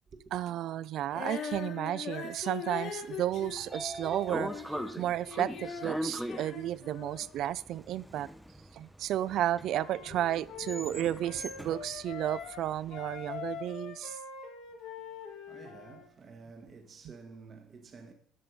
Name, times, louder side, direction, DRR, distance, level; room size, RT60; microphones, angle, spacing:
voice 1, 0.3-4.6 5.0-8.3 8.7-14.2, right 12 dB, 65° right, 0.3 m, -33 dB
Female singing, 1.1-5.0 5.2-7.3, left 7 dB, 70° left, 1.6 m, -41 dB
Train / Sliding door, 3.1-13.3, equal, ahead, 0.6 m, -41 dB
Wind instrument woodwind instrument, 9.7-12.6 12.9-16.1, left 7 dB, 85° left, 1.5 m, -44 dB
voice 2, 15.0-18.1, right 4 dB, 35° right, 1.1 m, -51 dB
13.0 x 4.4 x 5.2 m
cardioid pair, 135°, 0 cm